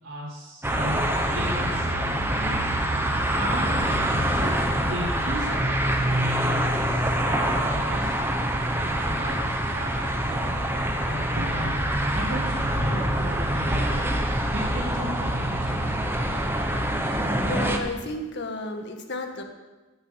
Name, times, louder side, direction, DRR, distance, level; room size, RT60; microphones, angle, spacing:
voice 1, 0.0-3.1 3.4-5.8 6.0-6.8 7.2-8.2 8.7-11.2 11.5-15.7, equal, 75° right, -6 dB, 3.2 m, -36 dB
sound 1, 0.6-17.8, right 1 dB, 10° right, 1.2 m, -25 dB
Drum, 11.3-14.1, right 1 dB, 40° right, 1.2 m, -39 dB
voice 2, 17.4-19.4, left 1 dB, 60° left, 4 dB, 1.8 m, -32 dB
15.5 x 6.9 x 8.2 m, 1.2 s
head